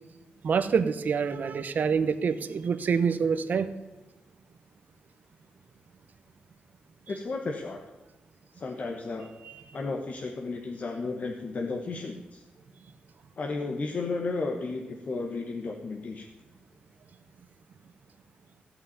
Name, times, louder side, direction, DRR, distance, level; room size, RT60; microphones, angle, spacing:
voice 1, 0.4-3.7, right 6 dB, 60° right, 11 dB, 0.9 m, -26 dB
voice 2, 7.1-7.8 8.5-9.3 9.7-12.4 13.4-16.3, left 3 dB, 45° left, 2 dB, 1.3 m, -33 dB
15.0 x 5.8 x 9.4 m, 1.1 s
wide cardioid pair, 115°, 3 cm